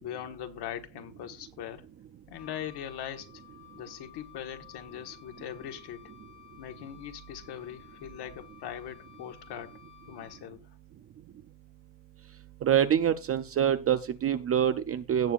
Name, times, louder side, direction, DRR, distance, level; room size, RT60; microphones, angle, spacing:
voice 1, 0.0-1.9 2.3-3.3 3.7-6.1 6.6-9.7 10.0-10.6, left 10 dB, 55° left, 1.5 m, -41 dB
Wind instrument woodwind instrument, 2.3-10.7, left 10 dB, 85° left, 6.9 m, -54 dB
voice 2, 12.6-15.3, right 9 dB, 30° right, 0.4 m, -25 dB
17.0 x 6.8 x 2.5 m
cardioid pair, 145°, 47 cm